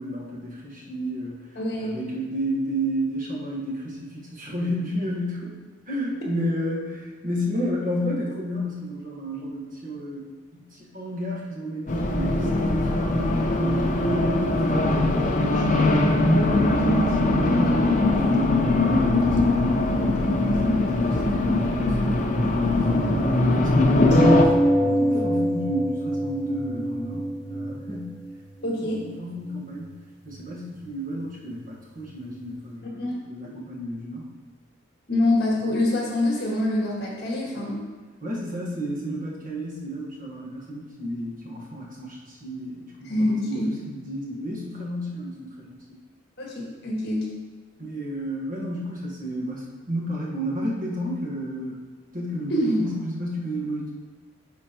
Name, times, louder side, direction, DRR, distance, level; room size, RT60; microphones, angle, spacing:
voice 1, 0.0-5.6 5.9-19.7 20.2-20.9 21.3-24.3 24.8-28.1 28.8-30.0 30.2-34.3 38.2-43.6 43.9-46.0 47.8-51.8 52.1-53.9, equal, 40° right, -4 dB, 1.4 m, -32 dB
voice 2, 1.6-2.0 20.6-20.8 25.1-25.2 28.6-29.0 33.0-33.1 33.4-33.6 35.1-37.8 43.0-43.7 46.4-47.3 52.5-52.9, left 1 dB, 55° left, -3 dB, 1.6 m, -25 dB
Race car auto racing, 11.9-24.4, left 2 dB, 40° left, 0.5 m, -21 dB
sound 1, 24.1-29.1 29.9-30.0 30.3-30.4, equal, 60° right, 1.0 m, -24 dB
9.7 x 4.3 x 2.9 m, 1.4 s
head